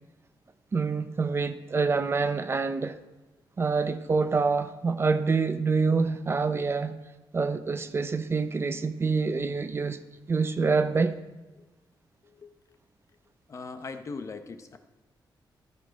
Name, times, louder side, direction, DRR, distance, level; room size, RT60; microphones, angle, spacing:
voice 1, 0.7-2.9 3.6-6.9 7.3-10.0 10.3-11.2, right 4 dB, 30° right, 0.5 m, -26 dB
voice 2, 13.5-14.8, left 4 dB, 40° left, 0.8 m, -40 dB
13.5 x 6.4 x 5.1 m
wide cardioid pair, 150°, 8 cm